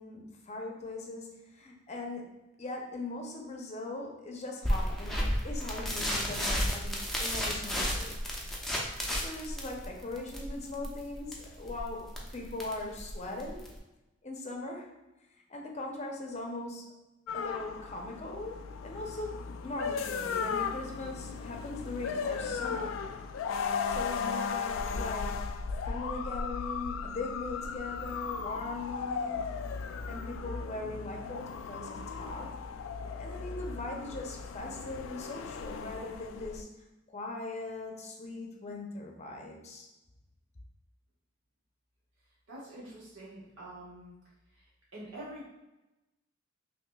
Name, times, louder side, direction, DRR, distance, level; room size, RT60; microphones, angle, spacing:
voice 1, 0.0-8.1 9.1-13.7 14.2-14.9 15.5-16.9 17.3-22.9 23.9-25.5 25.9-29.4 30.1-32.5 33.2-36.7 37.1-39.9, left 2 dB, 35° left, 1 dB, 0.7 m, -40 dB
sound 1, 4.6-13.8, equal, ahead, 0.6 m, -33 dB
sound 2, 17.3-36.6, left 5 dB, 75° left, 0.3 m, -36 dB
voice 2, 42.5-44.1 44.5-45.5, right 1 dB, 75° right, -8 dB, 1.4 m, -46 dB
5.8 x 2.7 x 2.3 m, 1.0 s
head